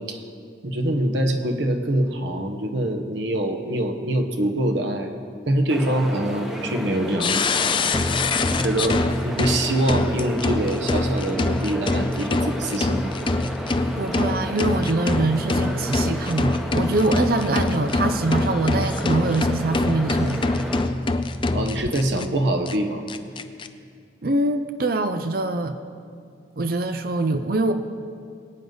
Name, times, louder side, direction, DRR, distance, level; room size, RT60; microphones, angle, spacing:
voice 1, 0.6-5.1 5.5-7.5 8.6-13.1 21.5-23.0, right 1 dB, 70° right, 4 dB, 1.2 m, -24 dB
sound 1, 5.7-20.8, equal, 5° right, 0.9 m, -33 dB
sound 2, 7.2-22.3 22.7-22.8 23.1-23.7, left 2 dB, 25° left, 0.4 m, -24 dB
voice 2, 14.0-20.5 24.2-25.8 26.6-27.7, right 2 dB, 50° right, 9 dB, 0.5 m, -24 dB
22.5 x 9.2 x 4.0 m, 2.3 s
head